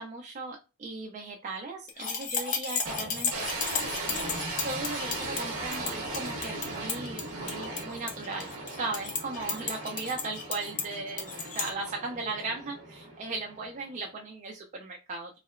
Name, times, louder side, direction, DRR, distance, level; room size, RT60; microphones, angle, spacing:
voice 1, 0.0-3.5 4.6-15.4, right 3 dB, 35° right, 1 dB, 0.3 m, -37 dB
sound 1, 1.9-11.7, left 5 dB, 35° left, 0.5 m, -34 dB
sound 2, 2.9-14.1, right 2 dB, 65° right, 0.9 m, -38 dB
2.7 x 2.0 x 2.4 m, 0.30 s
head